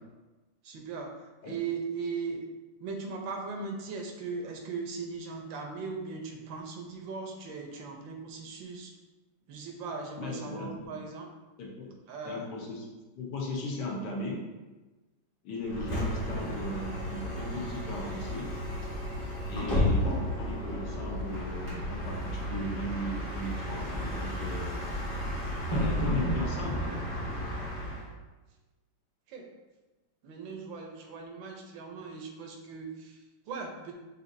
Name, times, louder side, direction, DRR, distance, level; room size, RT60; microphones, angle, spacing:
voice 1, 0.6-1.1 1.4-2.4 2.8-8.9 9.5-11.3 12.1-12.5 29.3-29.5 30.2-33.9, right 4 dB, 80° right, 2 dB, 1.4 m, -38 dB
voice 2, 10.2-11.0 11.6-12.0 12.3-12.8 13.1-14.4 15.4-18.5 19.5-24.9 25.7-27.0, left 1 dB, 70° left, -2 dB, 1.4 m, -37 dB
Bus, 15.6-28.1, equal, 25° left, 0.8 m, -32 dB
6.0 x 2.7 x 2.6 m, 1.2 s
omnidirectional pair, 2.1 m